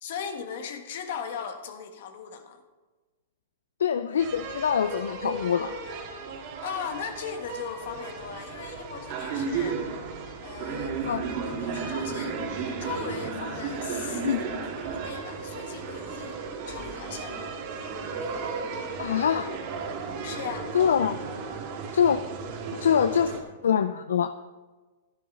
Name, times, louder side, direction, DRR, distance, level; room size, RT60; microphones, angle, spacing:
voice 1, 0.0-2.6 6.6-9.8 10.4-12.4 12.8-16.4 16.7-17.6 20.2-20.7, left 7 dB, 65° left, 6 dB, 1.5 m, -38 dB
voice 2, 3.8-5.7 11.1-11.2 14.2-14.4 19.0-19.5 20.7-21.2 21.9-22.2 22.7-23.3 23.6-24.3, left 8 dB, 80° left, 11 dB, 0.4 m, -24 dB
sound 1, 4.2-23.4, right 5 dB, 50° right, 1.9 m, -34 dB
13.0 x 10.5 x 3.8 m, 1.3 s
hypercardioid pair, 120°, 0 cm